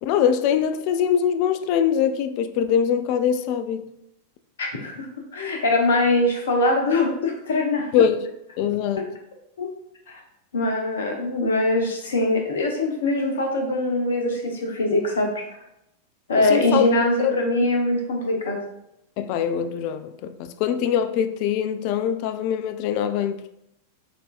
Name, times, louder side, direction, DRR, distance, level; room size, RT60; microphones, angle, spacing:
voice 1, 0.0-3.9 7.9-8.3 8.6-9.1 16.4-16.9 17.2-17.4 19.2-23.6, left 8 dB, 45° left, 0.3 m, -23 dB
voice 2, 4.6-5.1 5.3-7.9 9.6-9.7 10.1-10.2 10.5-15.4 16.3-18.6, left 2 dB, 65° left, 0.8 m, -22 dB
6.2 x 2.6 x 2.4 m
figure-of-eight pair, 90°, 0 cm